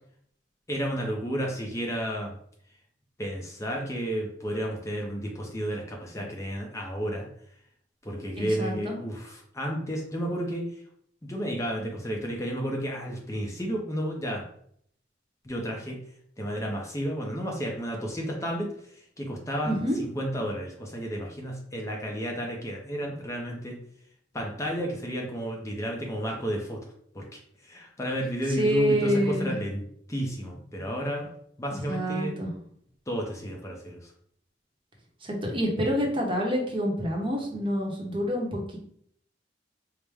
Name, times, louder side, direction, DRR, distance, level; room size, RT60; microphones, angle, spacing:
voice 1, 0.7-2.3 3.2-7.3 8.0-10.7 11.2-14.5 15.4-16.0 16.4-23.8 24.3-26.9 27.1-27.3 27.6-29.8 30.1-31.3 31.6-32.4 33.1-34.1, equal, 15° left, 0 dB, 0.5 m, -32 dB
voice 2, 8.3-8.9 19.6-20.0 28.6-29.5 31.9-32.5 35.2-38.8, equal, 30° right, 0 dB, 0.8 m, -27 dB
4.7 x 2.1 x 3.4 m, 0.66 s
head